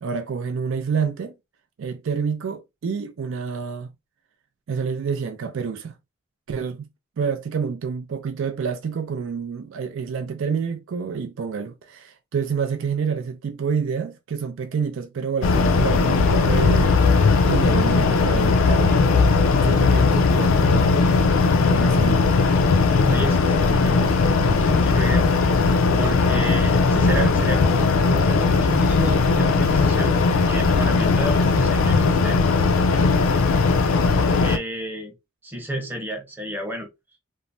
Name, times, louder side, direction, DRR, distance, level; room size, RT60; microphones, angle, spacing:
voice 1, 0.0-1.3 1.8-3.9 4.7-5.9 6.5-6.9 7.2-17.0 17.4-19.0 19.6-21.0 21.6-22.3, right 6 dB, 60° right, 0.4 m, -28 dB
sound 1, 15.4-34.6, left 4 dB, 65° left, 0.4 m, -18 dB
voice 2, 23.0-25.3 26.0-30.2 30.5-32.4 34.4-35.1 35.4-36.9, right 1 dB, 10° right, 0.8 m, -30 dB
3.1 x 2.0 x 2.5 m
head